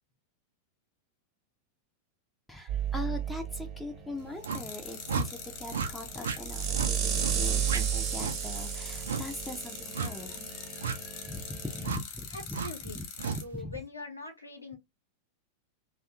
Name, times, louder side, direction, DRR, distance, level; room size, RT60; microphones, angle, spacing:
voice 1, 2.5-12.6 12.9-13.0 13.5-13.7, left 2 dB, 5° left, 0.4 m, -41 dB
sound 1, 2.7-11.9, right 8 dB, 35° right, 0.7 m, -34 dB
sound 2, 4.4-13.4, left 6 dB, 45° left, 1.0 m, -43 dB
sound 3, 4.4-4.6 5.1-5.3 5.7-5.9 6.2-6.4 6.7-6.9 7.2-7.4 7.7-7.8 8.2-8.4 9.1-9.2 9.9-10.1 10.8-11.0 11.8-12.0 12.5-12.7 13.2-13.4, right 5 dB, 65° right, 0.4 m, -32 dB
voice 2, 12.3-14.8, left 2 dB, 85° left, 0.9 m, -43 dB
2.7 x 2.3 x 2.3 m
figure-of-eight pair, 90°, 0 cm